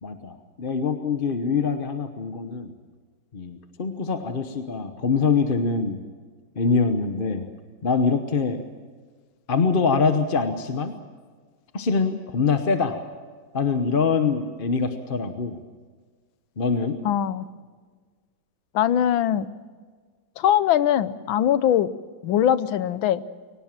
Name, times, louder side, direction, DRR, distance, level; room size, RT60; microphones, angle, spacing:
voice 1, 0.0-2.7 3.3-6.0 6.6-7.5 7.8-8.6 9.5-10.9 11.7-13.0 13.5-15.6 16.6-17.0, left 5 dB, 35° left, 7 dB, 0.9 m, -24 dB
voice 2, 17.0-17.4 18.7-19.5 20.4-21.9 22.2-23.2, left 10 dB, 85° left, 15 dB, 1.6 m, -21 dB
23.0 x 19.0 x 7.4 m, 1.6 s
omnidirectional pair, 2.1 m